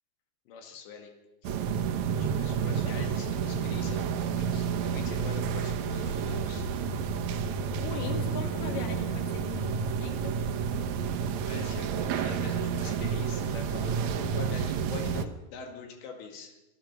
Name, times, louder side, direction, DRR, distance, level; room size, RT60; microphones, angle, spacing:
voice 1, 0.5-1.1 1.4-1.6 2.2-6.7 11.4-16.6, left 6 dB, 90° left, 4 dB, 4.4 m, -44 dB
sound 1, 1.4-15.3, right 6 dB, 80° right, 1.6 m, -30 dB
voice 2, 7.8-10.4, left 6 dB, 55° left, 4 dB, 4.0 m, -39 dB
26.5 x 18.0 x 6.0 m, 0.98 s
omnidirectional pair, 4.8 m